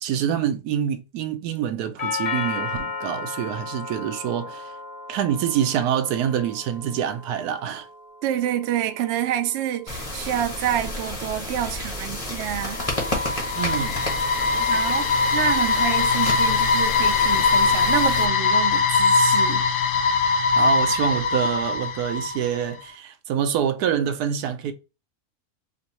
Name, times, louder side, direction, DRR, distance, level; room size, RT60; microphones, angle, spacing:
voice 1, 0.0-4.7 5.1-7.9 13.5-14.1 20.5-24.7, right 9 dB, 80° right, 1.1 m, -26 dB
Doorbell, 2.0-10.0, left 4 dB, 55° left, 0.4 m, -35 dB
voice 2, 8.2-12.9 14.4-19.6, right 11 dB, 65° right, 0.7 m, -28 dB
sound 1, 9.9-18.3, left 1 dB, 25° left, 1.1 m, -31 dB
sound 2, 12.5-22.6, left 4 dB, 85° left, 1.2 m, -21 dB
4.4 x 2.6 x 2.9 m
omnidirectional pair, 1.6 m